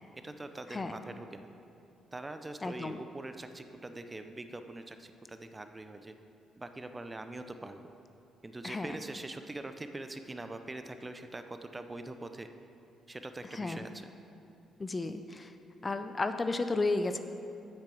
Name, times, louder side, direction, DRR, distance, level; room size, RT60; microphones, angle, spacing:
voice 1, 0.1-1.5 2.1-6.2 6.6-7.8 8.4-12.5 13.1-14.1, right 2 dB, 20° right, 8 dB, 0.6 m, -43 dB
voice 2, 2.6-3.0 8.6-9.0 13.5-13.8 14.8-15.5 15.8-17.2, left 3 dB, 25° left, 8 dB, 0.5 m, -33 dB
8.4 x 6.5 x 6.9 m, 2.7 s
cardioid pair, 90°, 0 cm